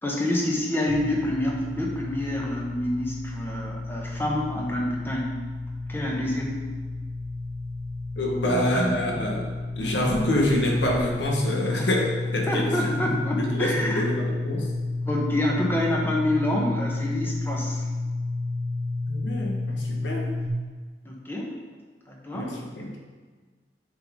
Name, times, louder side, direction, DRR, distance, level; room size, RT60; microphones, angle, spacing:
voice 1, 0.0-5.4 5.9-6.6 8.4-9.4 11.8-11.9 12.4-14.0 15.0-17.9 21.0-21.5 22.1-22.5, left 1 dB, 10° left, -2 dB, 1.0 m, -27 dB
sound 1, 0.9-20.5, left 2 dB, 30° left, 1.3 m, -31 dB
voice 2, 8.2-9.5 9.8-14.7 19.1-20.3 22.3-22.9, left 1 dB, 85° left, 0 dB, 1.3 m, -26 dB
7.6 x 5.4 x 3.7 m, 1.5 s
head